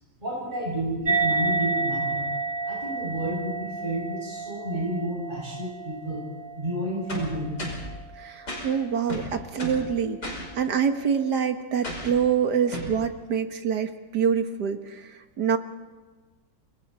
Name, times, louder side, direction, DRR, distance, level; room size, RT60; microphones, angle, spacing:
voice 1, 0.2-2.3 2.6-6.2 6.6-7.7, right 1 dB, 25° right, -4 dB, 6.4 m, -31 dB
sound 1, 1.0-7.9, right 3 dB, 40° right, 0.7 m, -30 dB
sound 2, 7.1-7.9 8.5-8.7 9.1-9.9 10.2-10.5 11.8-12.2 12.7-13.0, equal, 60° left, 5.9 m, -34 dB
voice 2, 8.2-15.6, right 7 dB, 65° right, 7 dB, 1.9 m, -26 dB
28.0 x 22.5 x 4.2 m, 1.3 s
omnidirectional pair, 2.0 m